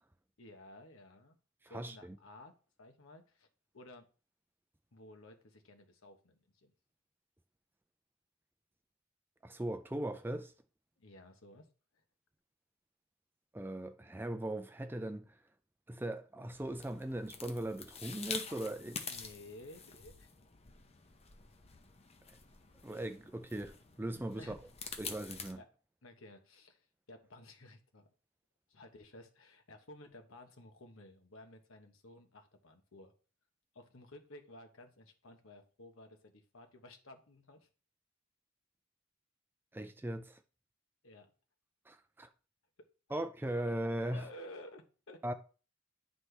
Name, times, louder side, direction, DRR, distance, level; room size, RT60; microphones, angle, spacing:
voice 1, 0.4-1.4 1.7-2.5 2.8-3.5 3.7-4.1 4.9-6.7 11.0-11.7 19.1-20.3 24.3-24.6 25.6-25.7 26.0-28.1 28.7-33.1 33.7-37.7 41.0-41.3 43.1-43.2 44.1-45.2, left 1 dB, 75° left, 1.1 m, -54 dB
voice 2, 1.6-2.2 9.4-10.5 13.5-15.4 15.9-19.0 22.3-22.4 22.8-24.6 25.0-25.6 39.7-40.4 41.9-42.3 43.1-44.3 45.2-45.3, right 1 dB, 10° right, 0.3 m, -39 dB
sound 1, 16.5-25.5, left 5 dB, 30° left, 0.6 m, -47 dB
9.5 x 4.2 x 3.3 m
head